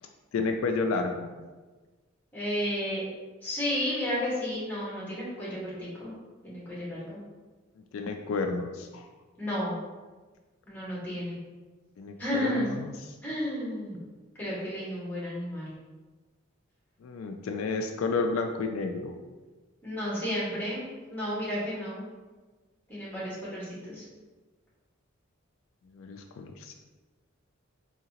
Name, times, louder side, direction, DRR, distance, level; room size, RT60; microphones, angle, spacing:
voice 1, 0.0-1.3 7.9-9.1 12.0-13.1 17.0-19.2 25.9-26.7, left 4 dB, 80° left, 5 dB, 0.3 m, -31 dB
voice 2, 2.3-3.0 3.4-6.1 6.4-7.2 9.4-9.8 10.7-11.4 12.2-12.8 13.2-14.0 14.4-15.7 19.8-20.8 21.1-22.0 22.9-24.0, left 1 dB, 10° left, -8 dB, 1.5 m, -32 dB
3.7 x 2.8 x 2.9 m, 1.3 s
head